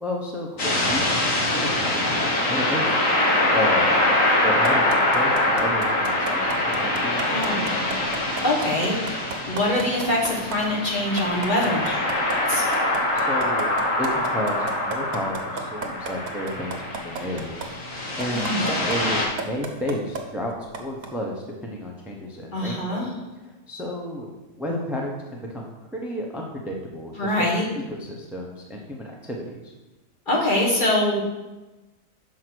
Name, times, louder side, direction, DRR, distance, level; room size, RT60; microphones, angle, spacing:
voice 1, 0.0-3.0 3.5-4.0 4.4-7.6 13.1-13.7 14.0-17.6 18.2-21.3 21.6-23.1 23.7-24.3 24.6-27.5 27.9-29.7, equal, ahead, -1 dB, 0.4 m, -32 dB
sound 1, 0.6-19.3, left 1 dB, 55° left, 1.9 m, -24 dB
sound 2, 4.6-10.6 11.0-17.7 18.2-19.0 19.4-20.2 20.7-21.1, right 5 dB, 65° right, 1.3 m, -32 dB
voice 2, 7.2-8.1 8.4-12.7 18.3-18.7 22.5-23.1 27.2-27.7 30.3-31.2, left 1 dB, 30° left, -3 dB, 1.6 m, -24 dB
6.3 x 4.7 x 6.1 m, 1.1 s
omnidirectional pair, 1.7 m